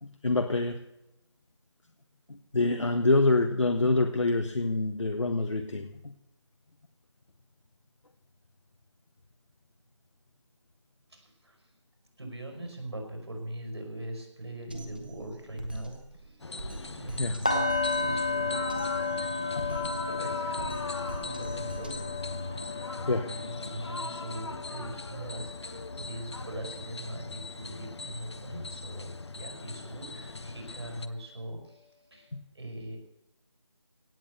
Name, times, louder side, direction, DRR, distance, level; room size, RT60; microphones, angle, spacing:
voice 1, 0.0-0.8 2.3-6.1 17.2-17.4 19.5-19.8 23.1-23.3 32.3-32.4, left 2 dB, 80° left, 6 dB, 1.4 m, -26 dB
voice 2, 11.1-11.7 12.2-16.4 17.0-17.7 18.0-18.6 19.4-22.0 22.9-33.0, right 1 dB, 60° right, 4 dB, 5.5 m, -41 dB
Drum kit, 14.7-22.7, right 2 dB, 20° right, 1.3 m, -44 dB
sound 1, 16.4-31.1, left 3 dB, 65° left, 1.0 m, -39 dB
sound 2, 17.4-27.4 27.7-28.0 28.4-28.6, left 4 dB, 15° left, 0.8 m, -34 dB
17.0 x 7.8 x 8.1 m, 0.91 s
figure-of-eight pair, 180°, 15 cm